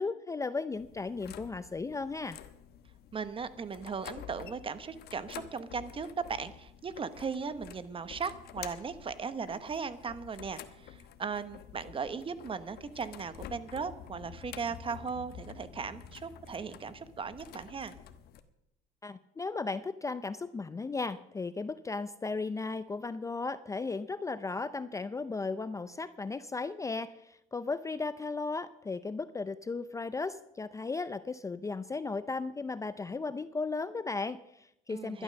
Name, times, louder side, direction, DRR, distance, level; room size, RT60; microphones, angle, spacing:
voice 1, 0.0-2.4 19.0-35.2, left 3 dB, 20° left, 14 dB, 0.5 m, -36 dB
sound 1, 0.7-18.4, left 10 dB, 70° left, 1.1 m, -49 dB
voice 2, 3.1-17.9 34.9-35.2, right 5 dB, 30° right, 13 dB, 1.0 m, -38 dB
12.0 x 11.5 x 6.5 m, 0.81 s
cardioid pair, 110°, 17 cm